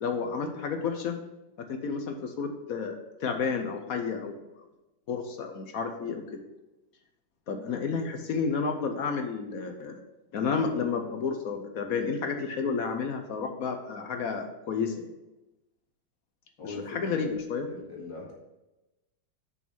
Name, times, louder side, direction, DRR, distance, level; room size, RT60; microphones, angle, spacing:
voice 1, 0.0-1.2 1.6-4.4 5.1-6.4 7.5-10.0 10.3-15.1 16.6-17.7, left 5 dB, 60° left, 5 dB, 1.1 m, -31 dB
voice 2, 16.6-17.3 17.7-18.3, left 3 dB, 80° left, -4 dB, 2.7 m, -40 dB
6.2 x 5.4 x 5.9 m, 1.0 s
omnidirectional pair, 2.0 m